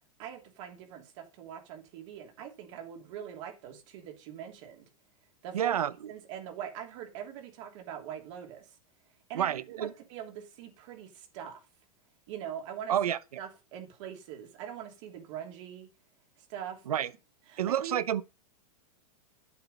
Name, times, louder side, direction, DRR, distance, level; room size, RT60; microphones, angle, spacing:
voice 1, 0.2-4.9 5.4-5.8 6.1-8.8 9.3-11.6 12.3-13.0 13.4-15.9 16.4-17.1 17.5-18.0, right 9 dB, 55° right, 3.0 m, -43 dB
voice 2, 5.5-5.9 9.3-9.9 12.9-13.2 16.9-17.1 17.6-18.2, right 10 dB, 90° right, 0.8 m, -28 dB
8.6 x 7.2 x 5.4 m
hypercardioid pair, 125°, 18 cm